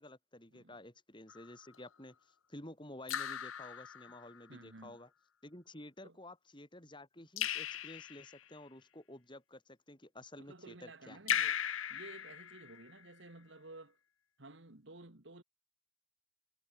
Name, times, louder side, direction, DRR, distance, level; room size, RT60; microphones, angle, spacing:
voice 1, 0.0-5.1 5.4-11.2, left 1 dB, 25° left, 5.0 m, -52 dB
Raindrop / Drip, 1.3-1.8 3.1-4.4 7.4-8.5 11.3-13.0, left 9 dB, 85° left, 1.0 m, -38 dB
voice 2, 4.5-5.0 6.0-6.2 10.4-11.6 11.9-14.0 14.4-15.4, right 2 dB, 65° right, 2.3 m, -53 dB
head